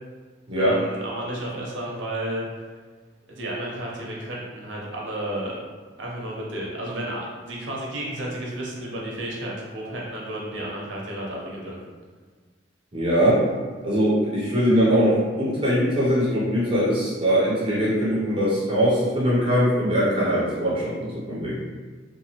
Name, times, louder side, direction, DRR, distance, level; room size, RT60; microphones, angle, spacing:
voice 1, 0.6-2.5 3.3-5.6 6.0-11.8, right 1 dB, 70° right, -3 dB, 0.7 m, -32 dB
voice 2, 12.9-13.4 13.8-21.6, equal, 25° right, -7 dB, 0.5 m, -21 dB
2.8 x 2.3 x 2.8 m, 1.5 s
head